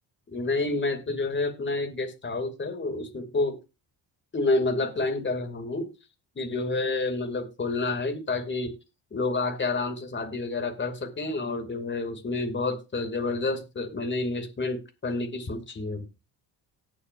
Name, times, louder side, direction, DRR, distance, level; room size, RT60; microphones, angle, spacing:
voice 1, 0.3-3.6 4.3-5.9 6.4-8.7 9.1-16.0, left 3 dB, 25° left, 5 dB, 2.5 m, -29 dB
18.5 x 6.5 x 2.6 m, 0.28 s
cardioid pair, 95°, 42 cm